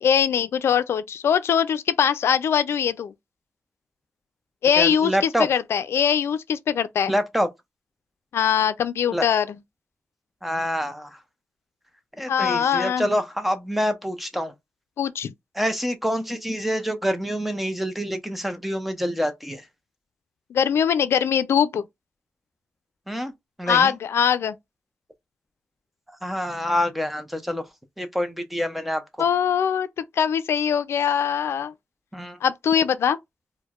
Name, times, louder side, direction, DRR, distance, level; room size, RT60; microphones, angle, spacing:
voice 1, 0.0-3.1 4.6-7.1 8.3-9.5 12.3-13.1 15.0-15.3 20.5-21.8 23.7-24.6 29.2-31.7 32.4-33.2, left 8 dB, 80° left, 0.4 m, -22 dB
voice 2, 4.8-5.5 7.1-7.5 9.1-9.3 10.4-11.2 12.2-14.5 15.6-19.6 23.1-23.3 23.6-23.9 26.2-27.6 28.0-29.3 32.1-32.4, equal, 5° right, 0.6 m, -26 dB
4.4 x 2.1 x 2.4 m
wide cardioid pair, 110°, 4 cm